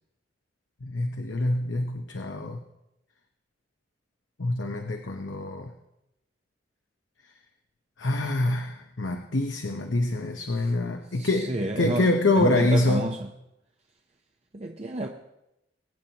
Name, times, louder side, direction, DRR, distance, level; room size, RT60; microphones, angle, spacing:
voice 1, 0.8-2.6 4.4-5.7 8.0-11.5 11.8-13.1, left 2 dB, 85° left, 4 dB, 0.9 m, -25 dB
voice 2, 11.2-12.1 12.4-13.3 14.5-15.1, right 2 dB, 35° right, 3 dB, 0.8 m, -30 dB
23.5 x 9.4 x 2.9 m, 0.87 s
head